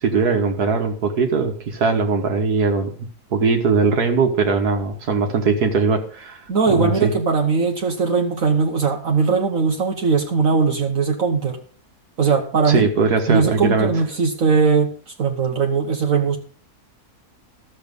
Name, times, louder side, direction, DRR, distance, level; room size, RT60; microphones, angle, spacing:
voice 1, 0.0-2.9 3.3-6.4 6.7-7.1 12.7-13.9, right 4 dB, 75° right, 4 dB, 1.9 m, -20 dB
voice 2, 6.5-11.6 12.2-12.9 13.3-16.4, right 5 dB, 60° right, 3 dB, 1.4 m, -19 dB
12.5 x 7.3 x 5.3 m, 0.43 s
omnidirectional pair, 1.7 m